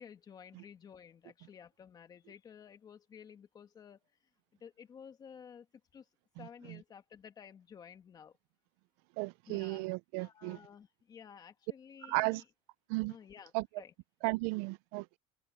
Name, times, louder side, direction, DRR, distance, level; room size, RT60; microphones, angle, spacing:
voice 1, 0.0-4.3 4.6-5.7 5.9-6.1 6.4-8.4 9.5-9.9 10.2-12.5 13.1-13.9, left 7 dB, 30° left, 1.9 m, -53 dB
voice 2, 9.2-10.6 12.1-12.4 12.9-13.1 13.5-13.7 14.2-15.2, right 25 dB, 80° right, 0.5 m, -34 dB
cardioid pair, 145°, 13 cm